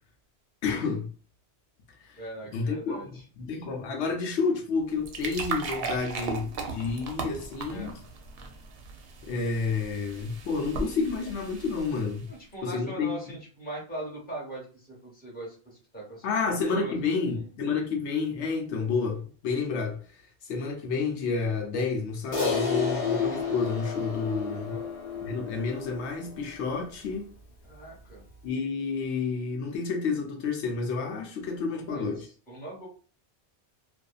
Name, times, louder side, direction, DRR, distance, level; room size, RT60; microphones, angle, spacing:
voice 1, 0.6-1.1 2.0-2.2 2.5-8.0 9.2-12.3 12.6-13.2 16.2-20.0 20.4-24.8 25.2-27.3 28.4-32.3, left 4 dB, 80° left, 0.9 m, -30 dB
voice 2, 2.2-3.2 7.7-8.0 12.3-17.5 24.7-24.9 27.6-28.2 31.7-32.9, right 2 dB, 10° left, 0.9 m, -41 dB
sound 1, 4.8-12.3, right 4 dB, 65° right, 0.8 m, -37 dB
Crash cymbal, 22.3-26.9, left 5 dB, 45° left, 0.8 m, -31 dB
2.6 x 2.3 x 2.3 m
omnidirectional pair, 1.2 m